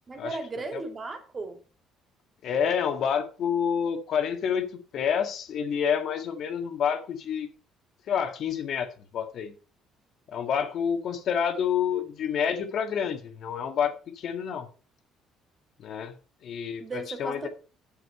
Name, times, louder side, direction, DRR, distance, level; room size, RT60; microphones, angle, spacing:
voice 1, 0.1-1.6 16.8-17.5, right 3 dB, 35° right, 2.8 m, -36 dB
voice 2, 2.4-4.7 4.9-7.5 8.1-8.9 9.1-9.6 10.3-14.7 15.8-16.1 16.4-17.5, left 7 dB, 65° left, 1.7 m, -28 dB
8.4 x 7.1 x 5.5 m
supercardioid pair, 85°, 0 cm